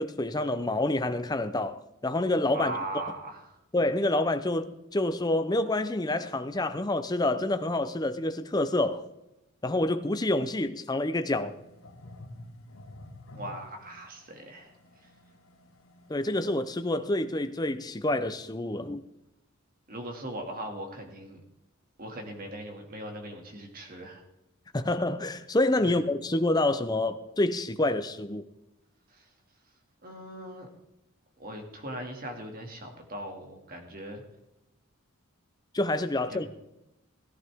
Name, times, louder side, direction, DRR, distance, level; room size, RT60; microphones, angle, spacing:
voice 1, 0.0-3.0 3.7-9.0 9.6-11.5 16.1-19.0 24.7-28.5 35.7-36.5, left 2 dB, 20° left, 0.6 m, -28 dB
voice 2, 2.5-3.6 13.3-15.1 19.9-21.4 22.0-24.2 25.8-26.0 29.1-29.3 30.0-30.7 31.4-34.2 36.3-36.5, right 1 dB, 40° right, 2.3 m, -39 dB
sound 1, 11.4-17.5, left 1 dB, 75° left, 1.7 m, -50 dB
17.0 x 11.5 x 3.6 m
head